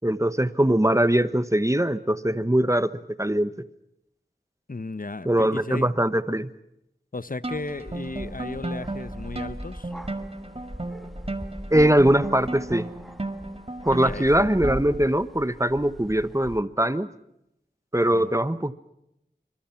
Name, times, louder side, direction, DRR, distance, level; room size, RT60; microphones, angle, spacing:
voice 1, 0.0-3.5 5.2-6.5 11.7-12.9 13.9-17.1 17.9-18.7, right 1 dB, 15° right, 1.1 m, -22 dB
voice 2, 4.7-5.9 7.1-9.9 14.0-14.2 18.0-18.3, left 3 dB, 50° left, 0.9 m, -35 dB
sound 1, 7.4-15.1, right 2 dB, 30° right, 1.8 m, -34 dB
sound 2, 7.5-16.6, equal, ahead, 1.5 m, -40 dB
27.0 x 26.0 x 5.9 m
wide cardioid pair, 40°, 18 cm